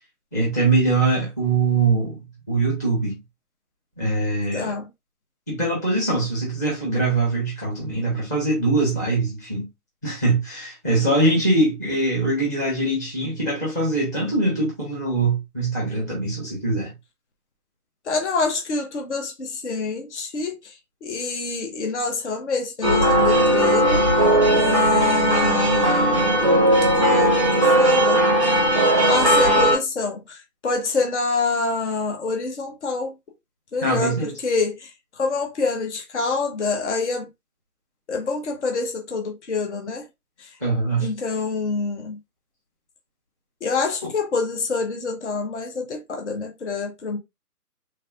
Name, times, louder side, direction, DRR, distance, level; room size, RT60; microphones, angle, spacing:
voice 1, 0.3-3.2 4.0-4.7 5.5-9.7 10.0-16.9 33.8-34.3 40.6-41.1 44.0-44.1, right 2 dB, 10° left, 0.9 m, -22 dB
voice 2, 4.5-4.8 18.1-20.6 21.0-24.0 24.5-26.2 27.0-28.2 29.1-30.4 30.6-33.1 33.7-34.9 35.2-37.3 38.1-40.1 41.0-42.2 43.6-47.2, left 4 dB, 50° left, 1.0 m, -26 dB
sound 1, 22.8-29.8, right 1 dB, 20° right, 0.6 m, -17 dB
3.4 x 3.3 x 2.3 m
hypercardioid pair, 160°, 47 cm